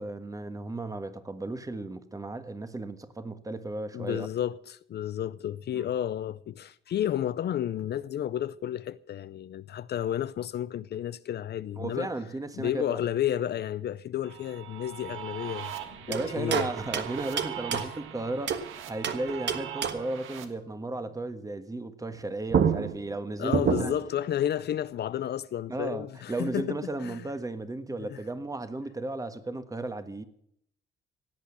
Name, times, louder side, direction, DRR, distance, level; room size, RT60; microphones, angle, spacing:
voice 1, 0.0-4.3 5.7-5.8 11.8-13.0 16.1-18.6 18.9-23.9 25.7-30.2, right 2 dB, 15° right, 1.4 m, -35 dB
voice 2, 3.9-12.1 12.6-16.7 17.7-17.9 23.4-27.2 28.0-28.2, left 11 dB, 55° left, 0.5 m, -32 dB
sound 1, 14.2-20.4, right 11 dB, 90° right, 1.6 m, -41 dB
sound 2, 16.1-18.7 19.0-20.2 22.1-22.2 22.5-24.1, right 7 dB, 65° right, 1.4 m, -29 dB
17.0 x 8.5 x 8.4 m
cardioid pair, 90°, 20 cm